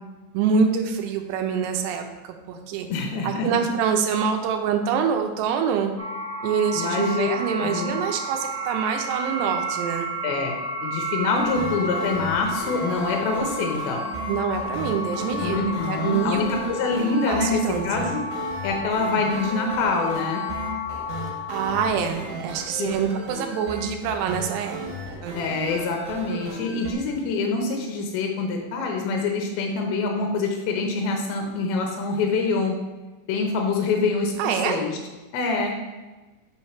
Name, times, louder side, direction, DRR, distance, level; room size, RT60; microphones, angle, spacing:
voice 1, 0.3-2.9 3.2-5.9 6.4-10.1 14.3-16.4 17.3-18.1 21.5-24.8 25.2-25.4 34.4-34.8, right 6 dB, 80° right, 5 dB, 2.7 m, -25 dB
voice 2, 2.9-3.7 6.8-7.3 7.6-7.9 10.2-10.6 10.8-14.0 15.4-18.2 18.6-20.4 22.8-22.9 25.4-32.8 33.3-35.0 35.3-35.7, left 4 dB, 75° left, 1 dB, 2.4 m, -25 dB
sound 1, 6.0-21.9, equal, 40° right, 3.3 m, -32 dB
sound 2, 11.4-26.9, right 2 dB, 65° right, 3.0 m, -36 dB
6.4 x 4.4 x 5.9 m, 1.2 s
omnidirectional pair, 5.2 m